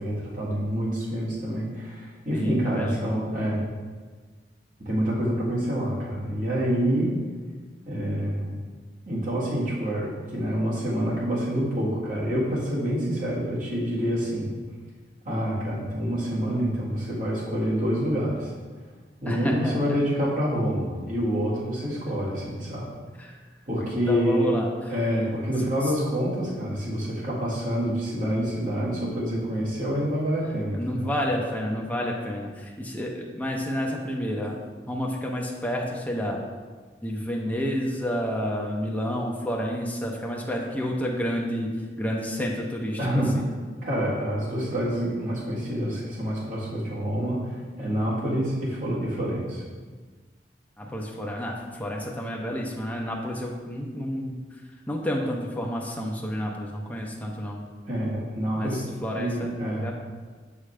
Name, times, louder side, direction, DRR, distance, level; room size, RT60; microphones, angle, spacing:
voice 1, 0.0-3.6 4.8-7.2 7.9-8.6 9.1-14.5 15.3-18.5 19.2-22.9 23.7-24.6 24.9-31.1 43.0-43.4 43.8-49.6 57.9-58.8 59.1-59.9, equal, 45° right, -6 dB, 1.7 m, -27 dB
voice 2, 2.3-3.2 19.3-19.7 23.2-23.3 24.1-24.7 30.7-34.6 34.9-36.4 37.0-41.7 42.0-43.4 50.8-54.4 54.9-57.6 58.6-58.7 59.0-59.9, equal, 10° left, -2 dB, 0.6 m, -30 dB
6.4 x 4.9 x 3.3 m, 1.4 s
head